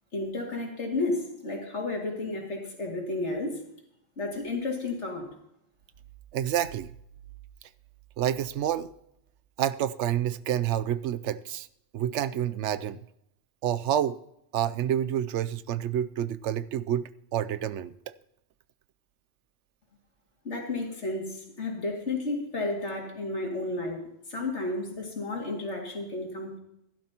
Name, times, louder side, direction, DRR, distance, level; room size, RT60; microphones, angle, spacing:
voice 1, 0.1-3.6 4.2-5.3 20.4-24.0 24.3-26.6, left 2 dB, 75° left, 0 dB, 2.7 m, -32 dB
voice 2, 6.3-6.9 8.2-8.9 9.6-11.7 11.9-13.0 13.6-14.2 14.5-17.9, right 11 dB, 85° right, 15 dB, 0.9 m, -28 dB
16.0 x 12.0 x 2.9 m, 0.78 s
omnidirectional pair, 1.2 m